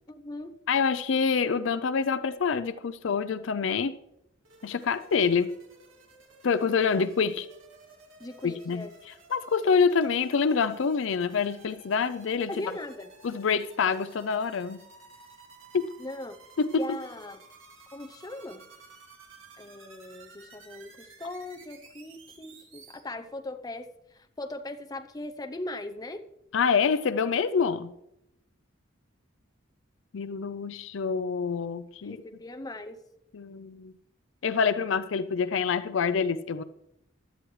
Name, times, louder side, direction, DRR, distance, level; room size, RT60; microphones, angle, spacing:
voice 1, 0.1-0.5 8.2-8.9 12.5-13.1 16.0-16.4 16.8-17.4 17.9-18.6 19.6-26.2 32.0-33.0, left 2 dB, 20° left, 7 dB, 0.7 m, -39 dB
voice 2, 0.7-3.9 4.6-5.6 6.4-7.5 8.4-8.9 9.3-12.6 13.2-14.8 15.7-15.9 16.6-17.0 26.5-27.9 30.1-32.2 33.3-33.9 34.4-36.6, left 5 dB, 65° left, 13 dB, 0.5 m, -26 dB
sound 1, 4.4-23.0, right 4 dB, 75° right, 2.4 m, -54 dB
16.0 x 11.5 x 3.2 m, 0.82 s
head